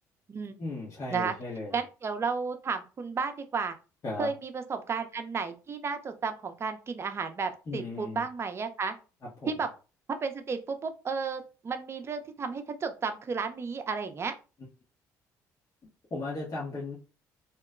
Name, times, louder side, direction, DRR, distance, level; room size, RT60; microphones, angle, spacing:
voice 1, 0.6-1.8 4.0-4.3 7.7-8.2 9.4-9.6 16.1-17.0, left 2 dB, 45° left, -7 dB, 1.3 m, -36 dB
voice 2, 1.7-3.8 4.2-8.9 9.5-9.7 10.2-14.3, right 5 dB, 35° right, 7 dB, 0.6 m, -33 dB
2.9 x 2.1 x 3.7 m, 0.33 s
supercardioid pair, 85°, 7 cm